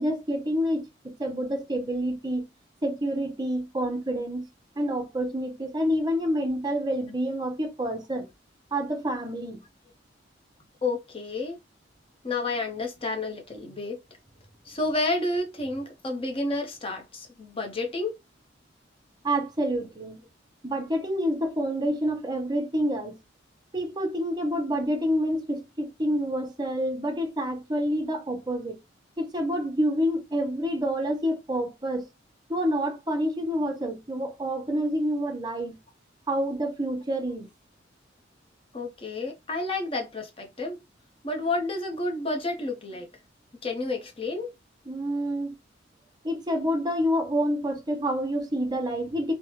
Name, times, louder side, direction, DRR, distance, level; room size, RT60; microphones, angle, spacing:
voice 1, 0.0-2.5 2.8-4.5 4.8-8.3 8.7-9.6 19.2-20.2 20.6-23.2 23.7-28.8 29.2-32.1 32.5-35.8 36.3-37.5 44.9-45.5 46.2-49.3, equal, 20° right, 0.6 m, -28 dB
voice 2, 10.8-11.6 12.2-14.0 14.6-18.1 38.7-40.8 41.2-43.1 43.6-44.5, left 2 dB, 30° left, 0.7 m, -30 dB
3.2 x 2.0 x 2.8 m
head